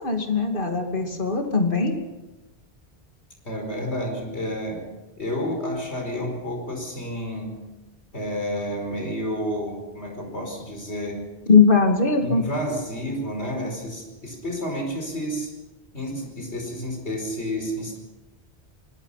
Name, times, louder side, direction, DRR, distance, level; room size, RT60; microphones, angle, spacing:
voice 1, 0.0-1.9 11.5-12.4, left 4 dB, 55° left, 4 dB, 2.8 m, -20 dB
voice 2, 3.4-4.9 5.2-7.6 8.1-11.2 12.2-15.5 15.9-18.0, equal, 90° left, 3 dB, 5.1 m, -30 dB
24.5 x 20.0 x 5.9 m, 1.1 s
omnidirectional pair, 1.1 m